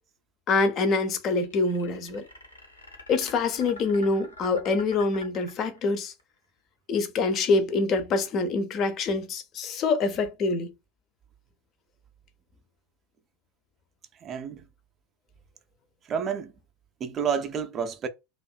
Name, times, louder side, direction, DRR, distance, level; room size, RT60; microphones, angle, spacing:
voice 1, 0.5-2.2 3.1-6.1 6.9-10.7, left 3 dB, 35° left, 0.5 m, -25 dB
sound 1, 1.2-6.2, left 2 dB, 80° left, 0.7 m, -46 dB
voice 2, 14.2-14.6 16.1-16.5 17.0-18.1, right 7 dB, 30° right, 0.3 m, -29 dB
2.5 x 2.3 x 2.3 m
figure-of-eight pair, 80°, 0 cm